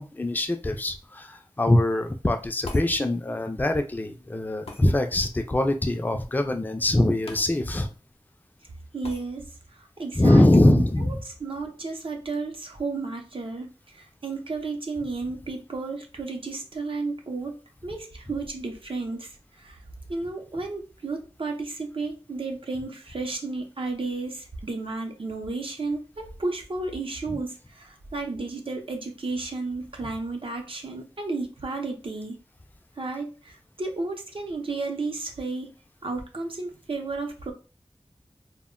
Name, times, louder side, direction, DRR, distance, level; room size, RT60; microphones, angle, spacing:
voice 1, 0.0-7.9 10.2-11.2 27.3-27.4, left 1 dB, 20° left, 5 dB, 0.3 m, -23 dB
sound 1, 2.6-2.9 4.7-4.9 7.3-7.5 7.8-7.9 9.0-9.2, left 2 dB, 80° left, 0.4 m, -39 dB
voice 2, 8.9-9.4 9.7-17.6 17.8-19.8 20.1-32.4 33.0-35.7 36.0-37.5, right 3 dB, 65° right, 3 dB, 0.6 m, -33 dB
2.1 x 2.1 x 3.6 m, 0.33 s
wide cardioid pair, 55°, 10 cm